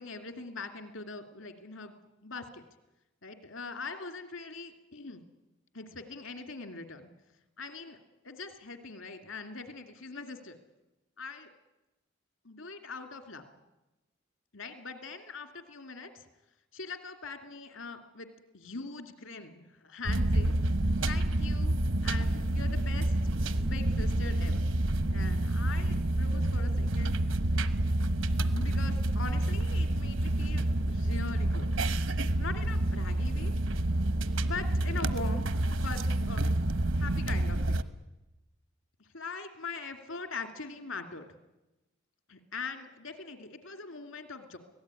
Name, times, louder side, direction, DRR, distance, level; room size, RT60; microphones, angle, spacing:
voice 1, 0.0-1.9 2.2-2.6 3.2-5.2 5.7-7.1 7.6-8.0 8.2-10.6 11.2-11.5 12.4-13.4 14.5-16.3 16.7-18.3 18.5-20.5 21.1-21.8 22.0-23.3 23.6-24.6 25.1-27.2 28.5-31.7 32.4-33.5 34.4-36.5 37.0-37.8 39.0-41.3 42.3-44.6, left 4 dB, 80° left, 7 dB, 2.6 m, -42 dB
sound 1, 20.1-37.8, right 1 dB, 75° right, 1.2 m, -28 dB
25.0 x 18.0 x 9.7 m, 1.0 s
head